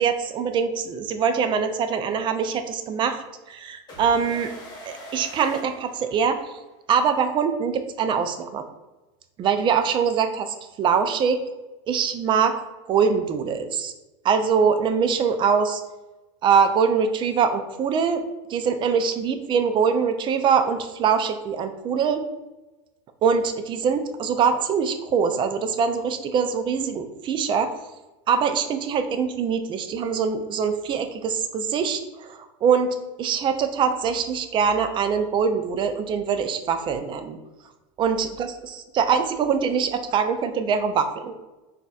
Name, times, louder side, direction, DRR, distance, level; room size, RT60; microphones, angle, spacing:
voice 1, 0.0-3.2 3.5-4.5 4.9-6.5 6.9-8.6 9.4-11.4 11.9-12.6 12.9-13.9 14.2-15.8 16.4-18.2 18.5-22.2 23.2-27.7 28.3-37.4 38.0-41.3, right 6 dB, 30° right, 8 dB, 0.3 m, -23 dB
sound 1, 3.9-6.7, equal, 25° left, 1.3 m, -42 dB
3.9 x 2.7 x 2.3 m, 1.1 s
supercardioid pair, 110°, 16 cm